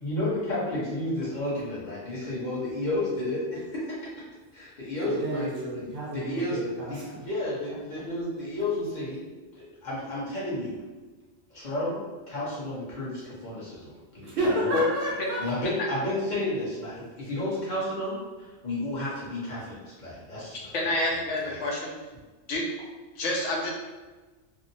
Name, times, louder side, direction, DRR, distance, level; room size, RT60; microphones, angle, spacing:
voice 1, 0.0-4.0 4.5-5.6 6.1-6.6 6.9-9.2 9.5-10.8 11.5-14.3 14.6-14.8 15.4-18.2 18.6-21.6, left 1 dB, 45° left, -8 dB, 0.9 m, -32 dB
voice 2, 5.0-7.2 14.2-15.5, right 1 dB, 60° right, -5 dB, 0.7 m, -30 dB
voice 3, 20.7-21.9 22.5-22.6 23.1-23.7, left 2 dB, 85° left, -2 dB, 1.0 m, -27 dB
2.7 x 2.1 x 2.6 m, 1.2 s
omnidirectional pair, 1.2 m